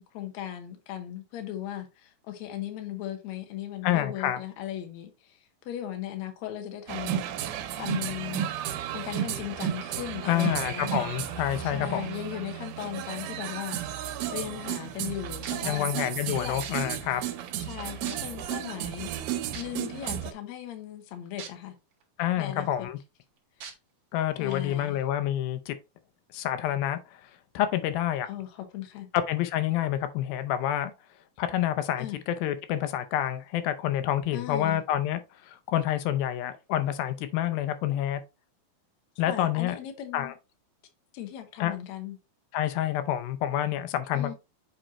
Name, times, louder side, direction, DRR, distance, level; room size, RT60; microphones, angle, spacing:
voice 1, 0.0-5.4 5.7-7.2 7.8-8.5 8.9-11.1 11.6-13.8 14.3-15.9 16.3-16.6 17.6-19.1 19.5-21.7 22.4-22.9 23.6-23.7 24.4-25.0 28.3-29.1 32.0-32.2 34.3-34.8 39.3-40.3 41.1-42.2 44.1-44.3, left 12 dB, 65° left, 2.0 m, -37 dB
voice 2, 3.8-4.4 10.3-12.1 15.7-17.2 22.2-23.0 24.1-25.8 26.3-27.0 27.5-28.3 29.1-30.9 31.4-38.2 39.2-39.8 40.1-40.3 41.6-41.7 42.5-44.3, left 11 dB, 90° left, 2.6 m, -28 dB
sound 1, 6.9-20.3, right 11 dB, 85° right, 2.4 m, -33 dB
sound 2, 15.4-15.7 16.6-16.7 17.5-17.6 18.0-18.4 19.5-19.6 21.4-21.5 22.0-22.1 23.6-23.7 24.5-24.6, right 7 dB, 65° right, 1.6 m, -40 dB
7.6 x 4.4 x 2.9 m
omnidirectional pair, 4.1 m